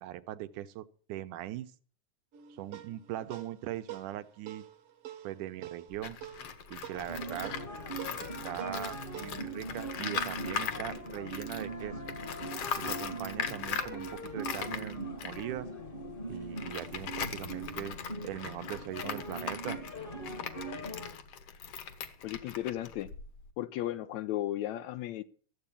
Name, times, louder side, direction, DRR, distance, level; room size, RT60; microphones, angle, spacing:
voice 1, 0.0-1.7 2.5-4.6 5.2-6.2 6.7-7.5 8.2-12.0 12.8-15.7 16.3-18.0 18.2-19.8, right 13 dB, 80° right, 2.3 m, -40 dB
sound 1, 2.3-11.1, right 12 dB, 60° right, 1.8 m, -48 dB
Tools, 5.9-11.7 12.0-23.5, left 7 dB, 55° left, 2.0 m, -40 dB
sound 2, 6.9-21.1, right 1 dB, 25° left, 1.1 m, -41 dB
voice 2, 22.2-23.1 23.6-25.2, left 13 dB, 75° left, 1.8 m, -35 dB
14.5 x 8.0 x 7.1 m
omnidirectional pair, 3.7 m